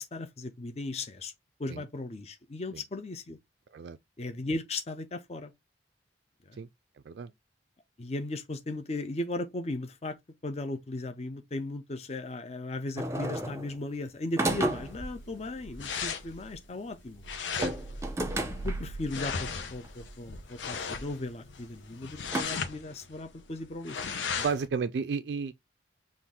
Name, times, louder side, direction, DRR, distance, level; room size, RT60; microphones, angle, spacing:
voice 1, 0.0-1.3 1.6-3.4 4.2-5.5 6.5-6.6 8.0-10.2 10.4-17.2 18.6-24.0, left 2 dB, 35° left, 0.6 m, -37 dB
sound 1, 13.0-13.8 14.4-15.2 17.5-18.9 19.8-19.9 20.8-20.9 22.3-22.4, right 1 dB, 15° right, 0.6 m, -32 dB
sound 2, 14.4-24.7, left 4 dB, 85° left, 0.8 m, -37 dB
voice 2, 24.4-25.5, right 5 dB, 65° right, 0.3 m, -32 dB
5.8 x 2.5 x 3.5 m
head